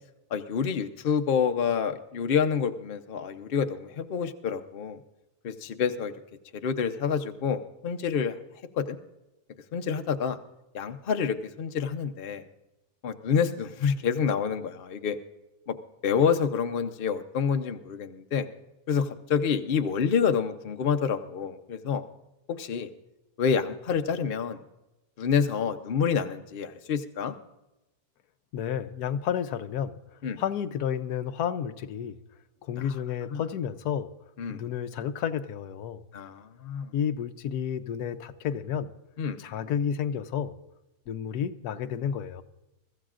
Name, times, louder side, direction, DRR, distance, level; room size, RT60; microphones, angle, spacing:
voice 1, 0.3-5.0 5.4-6.1 6.6-8.3 8.8-9.0 9.7-10.4 10.7-12.4 13.0-15.2 15.7-15.8 16.0-18.5 18.9-22.0 22.6-22.9 23.4-24.6 25.2-27.3 30.2-30.4 32.8-32.9 33.3-33.4 34.4-34.6 36.1-36.9 39.2-39.4, left 6 dB, 45° left, 0.8 m, -28 dB
voice 2, 28.5-30.0 30.4-32.2 32.6-34.1 34.5-36.0 36.9-38.9 39.4-40.5 41.1-42.4, left 8 dB, 85° left, 1.2 m, -31 dB
23.0 x 14.0 x 2.5 m
omnidirectional pair, 1.6 m